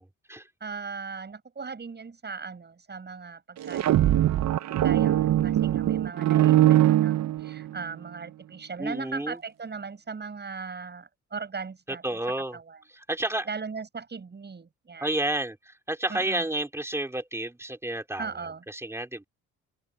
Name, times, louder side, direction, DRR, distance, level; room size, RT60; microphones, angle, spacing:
voice 1, 0.0-0.5 8.8-9.4 11.9-12.6 12.9-13.5 15.0-19.2, right 1 dB, 10° right, 4.1 m, -31 dB
voice 2, 0.6-12.2 12.5-12.8 13.5-15.2 16.1-16.5 18.2-18.6, right 5 dB, 35° right, 7.6 m, -38 dB
sound 1, 3.6-7.8, right 13 dB, 65° right, 0.8 m, -22 dB
cardioid pair, 90°, 30 cm